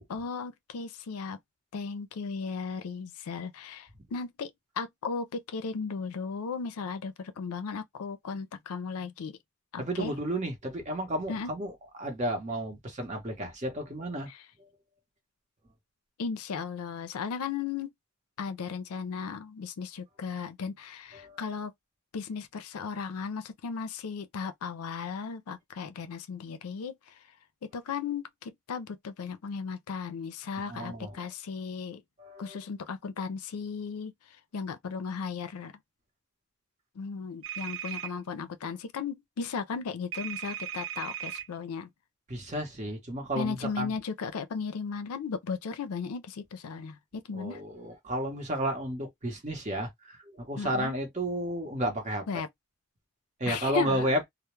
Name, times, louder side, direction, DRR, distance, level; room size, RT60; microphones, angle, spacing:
voice 1, 0.0-1.4 1.7-4.5 4.8-9.4 9.7-10.1 11.3-11.5 14.3-14.4 16.2-17.9 18.4-21.7 22.1-27.1 27.7-32.0 32.4-34.1 34.5-35.7 37.0-41.9 43.3-47.6 50.6-50.9 52.3-52.5 53.5-54.1, left 5 dB, 85° left, 0.4 m, -36 dB
voice 2, 9.8-11.7 12.0-14.3 21.1-21.4 30.7-31.2 32.2-32.6 42.3-43.9 47.3-52.3 53.4-54.2, right 1 dB, 30° right, 0.8 m, -32 dB
sound 1, 37.4-38.1 40.1-41.5, right 10 dB, 65° right, 0.4 m, -37 dB
2.2 x 2.0 x 3.0 m
head